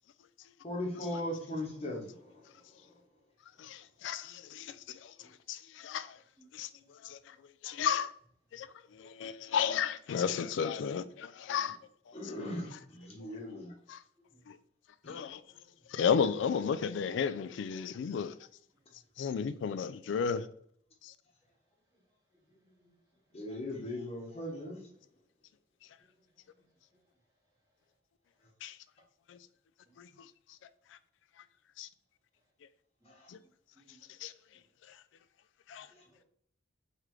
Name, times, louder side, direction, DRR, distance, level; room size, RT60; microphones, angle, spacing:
voice 1, 0.6-2.4 2.9-3.0 12.1-13.7 15.0-15.2 23.3-24.9 33.1-33.3, left 1 dB, 35° left, 1.0 m, -39 dB
voice 2, 3.6-5.1 5.5-6.2 6.5-6.7 7.0-7.4 7.6-8.1 8.5-8.7 8.9-11.8 12.2-12.3 13.9-14.0 14.5-14.6 15.1-15.4 15.9-18.3 19.2-20.5 21.0-21.1 28.6-28.8 29.3-29.4 30.0-30.1 31.8-31.9 33.3-33.4 34.2-34.3 35.7-35.9, left 7 dB, 80° left, 0.3 m, -33 dB
voice 3, 6.4-6.9 14.2-14.4 15.5-15.6 22.3-22.9 23.3-23.4 26.6-26.7 26.9-27.0 29.9-30.0 33.0-33.1 33.7-34.1 34.5-34.6 36.1-36.2, right 1 dB, 20° right, 1.7 m, -66 dB
3.6 x 3.3 x 3.1 m
head